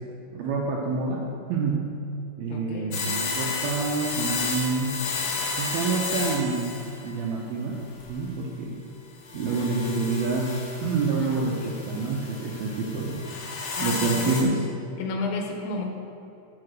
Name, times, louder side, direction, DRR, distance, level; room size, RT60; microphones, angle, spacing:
voice 1, 0.3-2.0 2.4-5.0 5.6-6.7 7.0-8.8 9.3-10.5 10.8-13.2 13.5-14.6, right 4 dB, 75° right, -2 dB, 2.3 m, -28 dB
voice 2, 2.5-3.3 11.2-11.8 13.8-14.4 15.0-15.8, left 3 dB, 80° left, 2 dB, 3.4 m, -32 dB
sound 1, 2.9-7.2 7.8-8.4 9.2-14.4, left 4 dB, 60° left, 2.9 m, -32 dB
14.0 x 4.9 x 6.5 m, 2.7 s
omnidirectional pair, 5.4 m